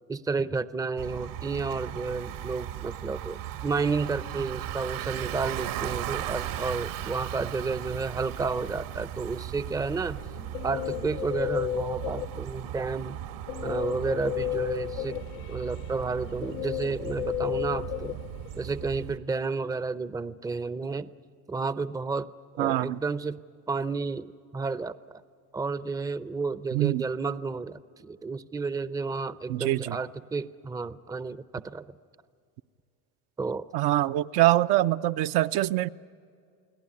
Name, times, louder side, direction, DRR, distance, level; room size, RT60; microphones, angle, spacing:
voice 1, 0.1-10.2 10.6-13.2 13.6-15.2 15.5-18.2 18.6-21.1 21.5-22.3 22.5-23.4 23.7-25.2 25.5-31.9 33.4-33.6, right 4 dB, 10° right, 15 dB, 0.6 m, -31 dB
Bicycle, 1.0-19.2, right 11 dB, 75° right, 1.9 m, -37 dB
Guitar, 10.2-12.7 13.5-18.9, left 16 dB, 70° left, 0.6 m, -34 dB
voice 2, 22.6-23.0 26.7-27.1 29.5-30.0 33.7-35.9, right 15 dB, 60° right, 10 dB, 0.6 m, -24 dB
29.0 x 18.0 x 9.6 m, 2.3 s
supercardioid pair, 95°, 45 cm